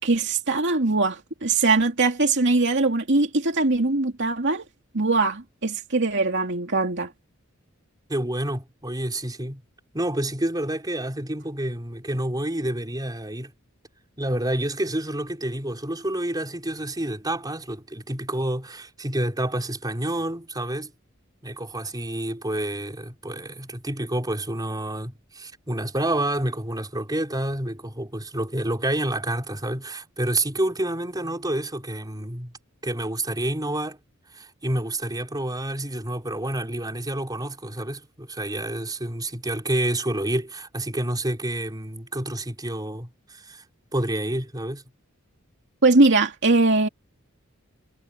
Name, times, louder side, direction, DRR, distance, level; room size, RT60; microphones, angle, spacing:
voice 1, 0.0-4.7 4.9-7.1 45.8-46.9, right 3 dB, 60° right, 2.6 m, -21 dB
voice 2, 8.1-9.6 9.9-13.5 14.2-20.9 21.4-32.5 32.8-34.0 34.3-43.6 43.9-44.8, right 1 dB, 20° right, 4.6 m, -28 dB
head